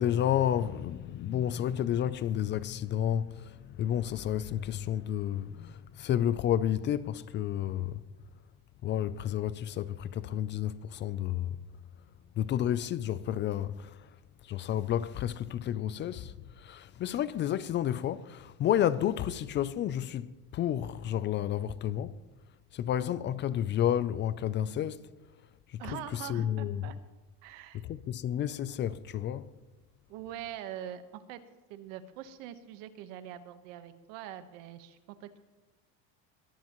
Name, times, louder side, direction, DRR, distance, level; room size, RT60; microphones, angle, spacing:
voice 1, 0.0-8.0 8.8-11.6 12.4-13.9 14.5-22.1 22.7-25.0 25.7-26.9 27.9-29.5, left 10 dB, 30° left, 0.4 m, -31 dB
voice 2, 25.8-26.9 27.4-27.8 30.1-31.0 31.3-31.4 31.7-35.4, right 11 dB, 85° right, 1.3 m, -43 dB
21.0 x 14.5 x 3.0 m
cardioid pair, 160°, 37 cm